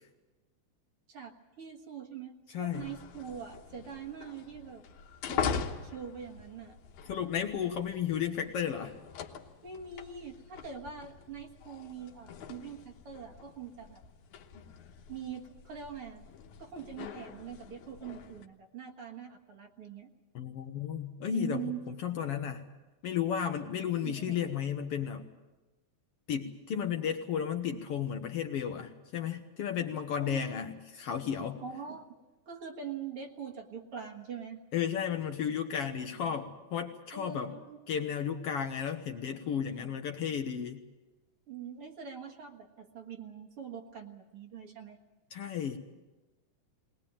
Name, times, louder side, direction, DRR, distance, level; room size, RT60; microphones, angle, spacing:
voice 1, 1.1-4.8 5.3-6.8 9.6-14.0 15.1-16.2 16.6-20.1 21.3-21.8 24.0-24.5 27.7-27.8 30.1-30.7 31.6-32.2 32.5-34.6 37.1-37.8 41.5-45.0, right 7 dB, 55° right, 3 dB, 2.3 m, -43 dB
sound 1, 2.7-18.5, left 7 dB, 85° left, 2.6 m, -42 dB
voice 2, 7.1-8.9 20.4-21.6 21.9-22.6 23.0-25.2 26.3-31.6 34.7-37.5 37.9-40.8 45.3-45.8, left 8 dB, 65° left, 6 dB, 1.7 m, -33 dB
21.0 x 19.5 x 8.7 m, 1.1 s
omnidirectional pair, 3.3 m